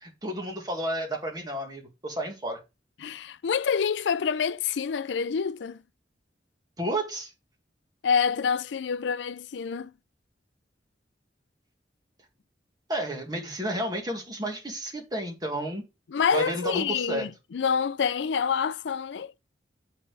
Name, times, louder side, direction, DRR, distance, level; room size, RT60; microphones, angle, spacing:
voice 1, 0.0-2.6 6.8-7.3 12.9-15.8 16.3-17.3, right 1 dB, 20° right, 1.9 m, -31 dB
voice 2, 3.0-5.8 8.0-9.9 16.1-19.4, left 6 dB, 80° left, 0.4 m, -27 dB
7.5 x 4.4 x 4.7 m
head